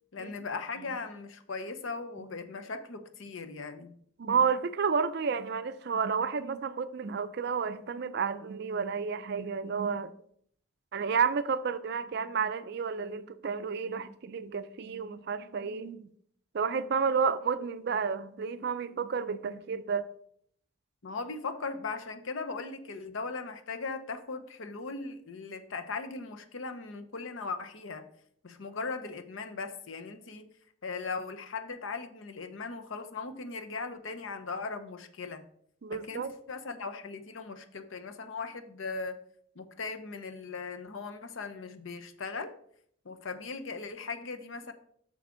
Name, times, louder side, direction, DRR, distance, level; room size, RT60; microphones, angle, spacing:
voice 1, 0.1-3.9 21.0-28.0 28.4-30.5 30.8-35.4 35.9-39.2 39.6-42.5 43.0-44.7, left 4 dB, 75° left, 0.7 m, -38 dB
voice 2, 4.2-10.1 10.9-16.1 16.5-20.1 35.8-36.3, right 6 dB, 55° right, 0.4 m, -31 dB
6.9 x 6.3 x 3.8 m
head